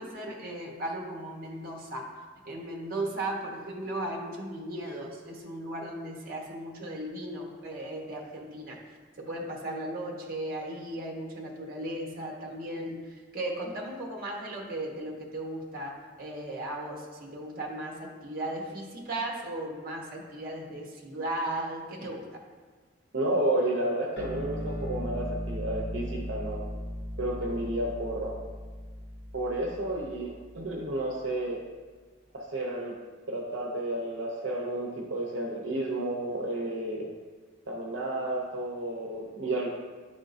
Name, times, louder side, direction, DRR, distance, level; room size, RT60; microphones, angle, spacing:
voice 1, 0.0-2.0 2.4-8.8 9.2-15.9 16.2-22.4, right 1 dB, 45° right, -1 dB, 1.0 m, -36 dB
voice 2, 23.1-26.6 27.2-28.3 29.3-31.6 32.3-33.0 33.3-37.1 37.7-39.7, right 1 dB, 75° right, -2 dB, 0.7 m, -31 dB
sound 1, 24.2-31.0, equal, 60° left, 1.1 m, -38 dB
10.0 x 3.7 x 2.6 m, 1.5 s
head